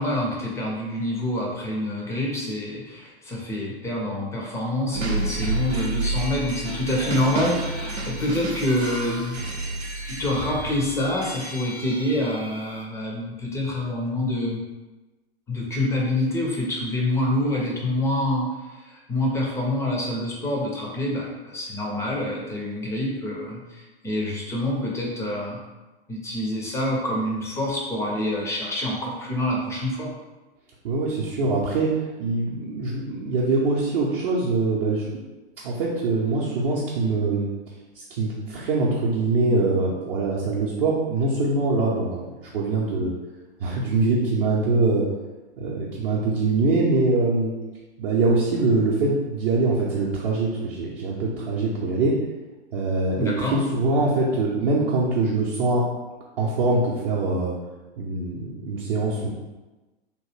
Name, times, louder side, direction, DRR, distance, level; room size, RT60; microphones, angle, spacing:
voice 1, 0.0-9.4 10.0-14.6 15.5-25.6 26.1-30.1 53.2-53.6, left 1 dB, 10° left, -3 dB, 0.4 m, -26 dB
sound 1, 4.9-12.8, right 2 dB, 90° right, 0.6 m, -31 dB
voice 2, 30.8-31.9 32.2-35.2 35.6-37.5 38.0-43.1 43.6-45.1 45.6-47.5 48.0-52.2 52.7-55.8 56.4-57.5 58.0-59.3, right 3 dB, 50° right, -6 dB, 0.6 m, -23 dB
3.0 x 2.2 x 3.1 m, 1.1 s
figure-of-eight pair, 105°, 31 cm